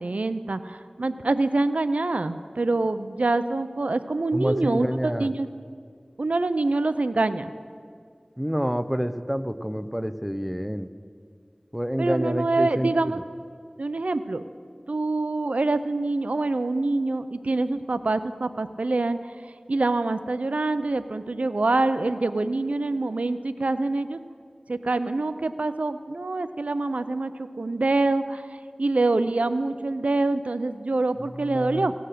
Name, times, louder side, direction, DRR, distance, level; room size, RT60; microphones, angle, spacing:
voice 1, 0.0-5.5 6.2-7.5 12.0-13.2 13.8-14.4 14.9-19.2 19.4-24.2 24.7-28.5 28.8-31.9, right 2 dB, 85° right, 12 dB, 0.4 m, -25 dB
voice 2, 4.3-5.3 8.4-10.9 11.7-13.2 31.2-31.9, equal, 5° right, 11 dB, 0.5 m, -28 dB
16.5 x 7.7 x 6.6 m, 2.2 s
wide cardioid pair, 40°, 2 cm